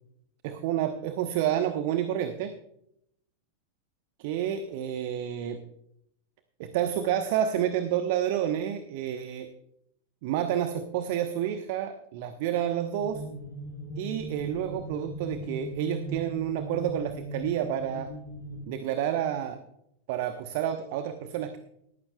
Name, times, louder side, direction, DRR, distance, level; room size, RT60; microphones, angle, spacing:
voice 1, 0.4-2.5 4.2-5.6 6.6-9.5 10.2-13.2 14.0-18.1 18.7-19.6 20.1-21.6, right 10 dB, 50° right, 8 dB, 1.0 m, -29 dB
sound 1, 13.0-18.7, equal, 75° left, 5.9 m, -39 dB
19.0 x 14.5 x 2.3 m, 0.75 s
figure-of-eight pair, 90°, 0 cm